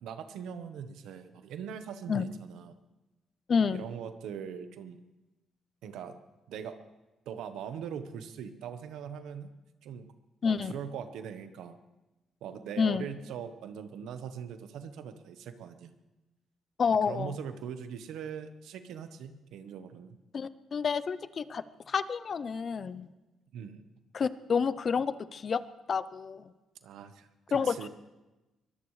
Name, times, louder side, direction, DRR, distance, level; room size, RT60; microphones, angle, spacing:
voice 1, 0.0-2.7 3.7-5.0 5.8-6.2 6.5-6.8 7.2-9.5 9.8-10.1 10.4-11.7 12.4-15.9 17.1-20.2 23.5-23.8 26.8-27.9, right 7 dB, 85° right, 9 dB, 1.1 m, -41 dB
voice 2, 3.5-3.8 10.4-10.7 12.8-13.1 16.8-17.3 20.3-23.1 24.1-25.6 25.9-26.5 27.5-27.9, left 6 dB, 45° left, 15 dB, 0.7 m, -29 dB
23.0 x 18.5 x 3.3 m, 1.1 s
cardioid pair, 90°, 0 cm